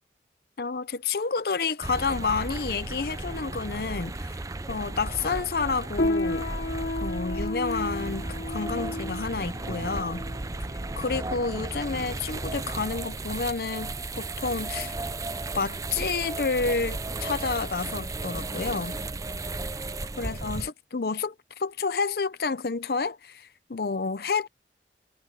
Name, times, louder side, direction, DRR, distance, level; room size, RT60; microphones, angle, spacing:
voice 1, 0.6-4.4 4.7-6.5 7.0-10.3 11.0-15.0 15.5-19.0 20.2-24.5, left 4 dB, 60° left, 0.6 m, -30 dB
sound 1, 1.8-20.7, right 2 dB, 20° right, 0.5 m, -34 dB
Piano, 5.9-15.9, left 1 dB, 75° left, 2.4 m, -34 dB
head